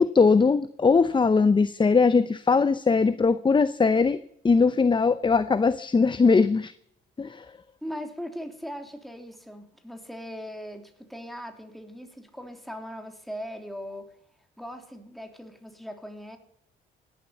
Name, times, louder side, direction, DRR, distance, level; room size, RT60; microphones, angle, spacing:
voice 1, 0.0-4.2 4.4-6.7 7.2-7.5, left 4 dB, 25° left, 0.7 m, -20 dB
voice 2, 7.8-14.1 14.6-16.4, equal, ahead, 3.1 m, -39 dB
16.5 x 11.5 x 7.0 m
cardioid pair, 90°, 20 cm